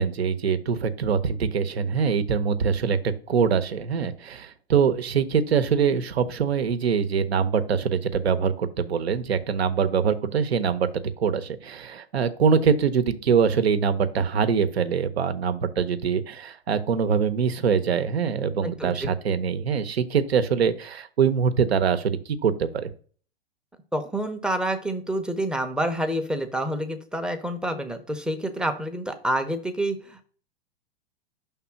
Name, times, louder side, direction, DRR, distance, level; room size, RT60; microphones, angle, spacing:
voice 1, 0.0-10.9 11.2-22.9, right 6 dB, 75° right, 11 dB, 0.8 m, -23 dB
voice 2, 18.6-19.1 23.9-30.2, right 1 dB, 5° right, 6 dB, 0.6 m, -28 dB
5.7 x 3.6 x 5.6 m, 0.43 s
hypercardioid pair, 105°, 31 cm